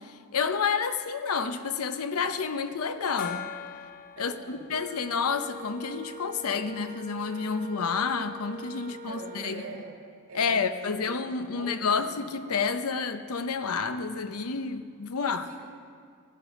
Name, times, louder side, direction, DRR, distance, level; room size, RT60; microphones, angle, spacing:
voice 1, 0.0-3.4 4.2-9.6 10.3-15.5, left 5 dB, 90° left, 0.8 m, -29 dB
Gong, 3.2-6.4, left 9 dB, 40° left, 0.5 m, -42 dB
voice 2, 4.1-4.7 8.8-9.9 10.3-12.2 15.1-15.7, right 2 dB, 70° right, 2.3 m, -44 dB
Wind instrument woodwind instrument, 4.7-9.6, equal, 40° right, 0.6 m, -44 dB
16.5 x 11.0 x 5.1 m
head